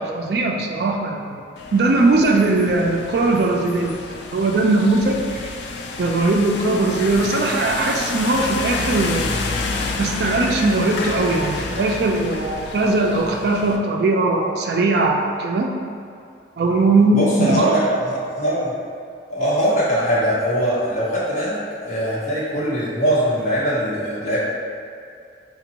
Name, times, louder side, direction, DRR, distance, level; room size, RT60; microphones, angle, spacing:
voice 1, 0.0-1.4 1.7-5.1 5.4-5.5 6.0-9.3 10.0-15.7 16.6-18.0, right 2 dB, 60° right, 1 dB, 0.3 m, -19 dB
sound 1, 1.6-13.8, left 3 dB, 70° left, 0.3 m, -29 dB
voice 2, 17.1-17.8 18.1-18.7 19.3-24.4, equal, 40° left, -8 dB, 1.0 m, -22 dB
5.1 x 2.2 x 2.8 m, 2.4 s
head